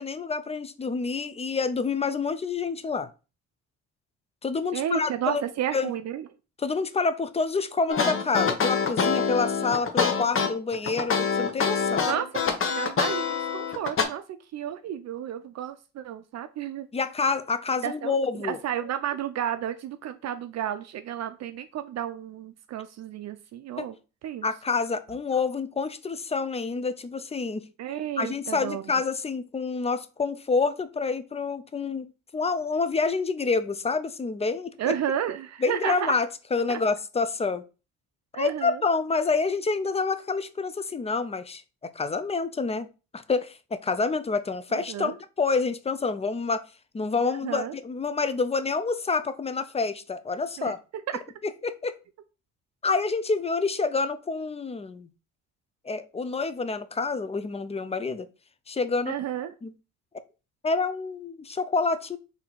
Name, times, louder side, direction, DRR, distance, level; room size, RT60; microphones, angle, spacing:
voice 1, 0.0-3.1 4.4-5.4 5.7-5.9 6.6-12.1 16.9-18.6 23.8-23.9 24.4-27.7 28.2-32.1 32.3-34.9 35.6-37.6 38.4-41.6 41.9-42.9 43.1-46.6 46.9-50.8 51.4-52.0 52.8-55.1 55.8-58.3 58.7-59.1 59.6-59.7 60.6-62.2, left 4 dB, 20° left, 0.4 m, -28 dB
voice 2, 4.7-6.3 12.1-12.3 12.6-14.2 14.5-16.9 17.8-23.9 24.2-24.5 27.8-28.9 34.8-36.1 36.7-36.8 38.3-38.8 44.9-45.1 47.3-47.7 50.6-50.7 51.1-51.2 59.1-59.5, right 10 dB, 60° right, 0.5 m, -32 dB
sound 1, 7.9-14.0, left 6 dB, 45° left, 0.9 m, -25 dB
3.9 x 2.8 x 4.4 m
cardioid pair, 90°, 30 cm